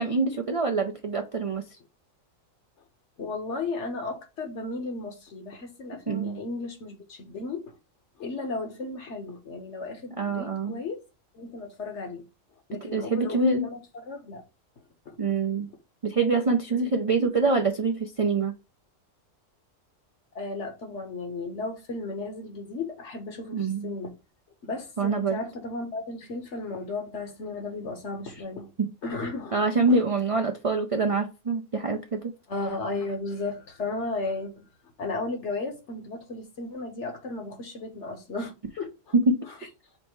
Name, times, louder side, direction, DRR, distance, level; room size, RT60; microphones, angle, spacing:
voice 1, 0.0-1.6 6.1-6.4 10.2-10.8 12.9-13.7 15.2-15.7 16.0-18.5 23.5-23.9 25.0-25.4 28.8-28.9 29.5-32.3 39.1-39.4, right 3 dB, 50° right, 0.4 m, -25 dB
voice 2, 3.2-7.7 8.2-11.0 11.3-12.2 12.7-14.4 15.1-15.2 16.8-16.9 17.2-17.3 20.3-24.1 24.7-28.7 29.0-29.6 29.9-30.0 32.5-34.7 35.0-39.1, left 3 dB, 65° left, 1.3 m, -34 dB
5.3 x 2.1 x 4.5 m
omnidirectional pair, 1.3 m